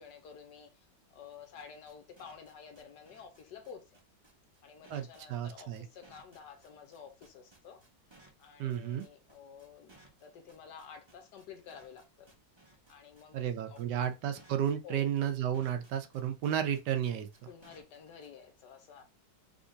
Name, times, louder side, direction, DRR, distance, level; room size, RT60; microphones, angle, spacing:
voice 1, 0.0-4.0 4.6-7.8 8.4-9.9 10.2-12.3 12.9-13.4 13.7-13.8 14.8-15.1 17.5-19.0, left 6 dB, 70° left, 1.3 m, -51 dB
sound 1, 1.3-18.3, right 2 dB, 20° right, 0.7 m, -61 dB
voice 2, 4.9-5.8 8.6-9.0 13.3-17.3, right 9 dB, 75° right, 1.2 m, -32 dB
3.7 x 3.6 x 2.6 m
omnidirectional pair, 1.9 m